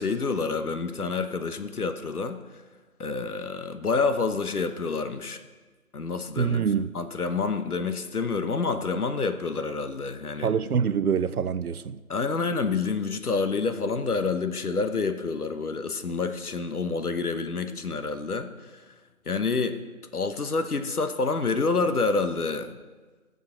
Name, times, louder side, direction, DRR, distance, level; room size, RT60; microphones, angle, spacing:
voice 1, 0.0-2.4 3.0-5.4 5.9-6.6 6.9-10.5 12.1-18.8 19.3-19.8 20.1-22.8, left 4 dB, 80° left, 1.1 m, -28 dB
voice 2, 6.4-6.9 10.4-12.0, right 7 dB, 80° right, 0.6 m, -25 dB
14.5 x 6.7 x 4.0 m
figure-of-eight pair, 160°, 44 cm